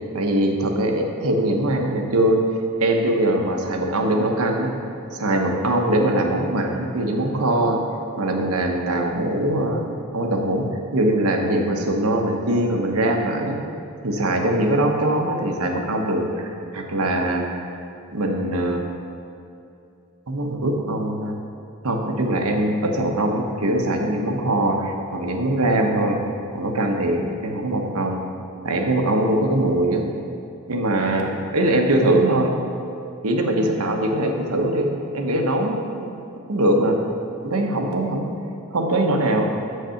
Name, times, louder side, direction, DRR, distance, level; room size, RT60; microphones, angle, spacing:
voice 1, 0.1-2.4 2.8-4.7 5.1-7.8 8.2-9.8 10.1-13.6 14.0-17.8 18.1-18.8 20.3-21.3 21.8-26.2 26.5-28.2 28.6-30.0 30.7-32.5 33.2-36.1 36.5-37.0 37.4-38.3 38.7-39.5, right 1 dB, 85° right, 2 dB, 1.0 m, -22 dB
7.5 x 6.5 x 5.7 m, 2.5 s
head